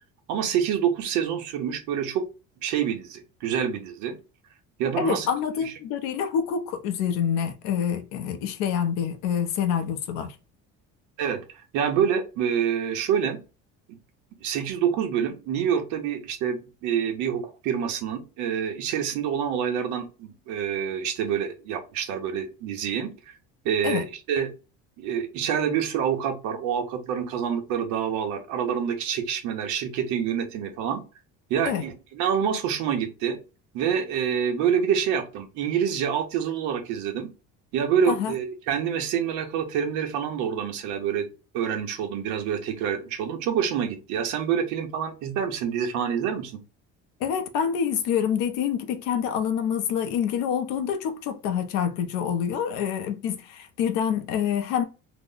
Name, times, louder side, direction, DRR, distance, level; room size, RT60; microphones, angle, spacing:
voice 1, 0.3-2.2 2.6-4.2 4.8-5.3 5.6-5.7 11.2-13.4 13.9-14.0 14.4-23.3 23.6-24.5 25.0-31.0 31.5-33.4 33.7-37.3 37.7-41.3 41.5-46.6, right 8 dB, 70° right, 0.9 m, -27 dB
voice 2, 5.0-10.3 23.8-24.1 31.7-31.8 38.1-38.3 47.2-54.8, left 8 dB, 85° left, 0.7 m, -27 dB
3.0 x 2.1 x 3.7 m
cardioid pair, 175°, 31 cm